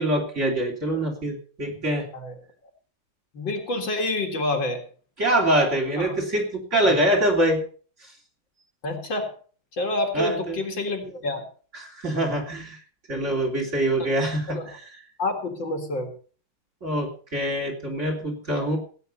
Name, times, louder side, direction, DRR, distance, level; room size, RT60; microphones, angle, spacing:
voice 1, 0.0-2.1 5.2-7.6 8.0-8.1 10.1-10.6 11.7-12.8 13.1-15.0 16.8-18.8, right 1 dB, 35° right, 2 dB, 3.7 m, -24 dB
voice 2, 3.3-4.8 6.0-6.2 8.8-9.3 9.7-11.5 14.0-14.1 14.5-14.8 15.2-16.1, left 2 dB, 60° left, 3 dB, 2.7 m, -28 dB
17.0 x 9.1 x 5.5 m, 0.42 s
omnidirectional pair, 2.3 m